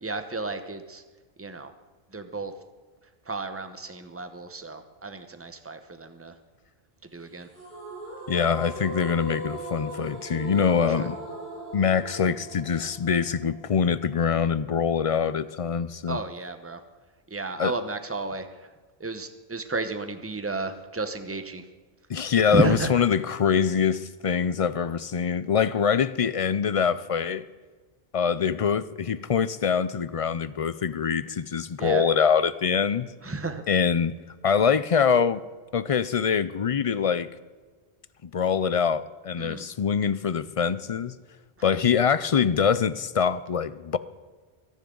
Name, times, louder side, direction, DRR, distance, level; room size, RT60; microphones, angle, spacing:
voice 1, 0.0-1.0 1.4-1.7 2.1-2.5 3.3-6.3 7.1-7.5 11.0-11.1 16.1-16.8 17.3-18.5 19.0-21.6 22.4-22.9 31.8-32.1 33.2-33.6 39.4-39.7, right 3 dB, 15° right, 0.9 m, -32 dB
sound 1, 7.5-14.6, right 1 dB, 50° right, 4.9 m, -39 dB
voice 2, 8.3-11.1 11.7-16.2 17.6-17.7 22.1-27.4 28.1-33.1 33.7-34.1 34.4-35.4 35.7-37.3 38.2-41.2 41.6-44.0, left 6 dB, 45° left, 0.4 m, -24 dB
24.5 x 10.5 x 3.9 m
omnidirectional pair, 1.1 m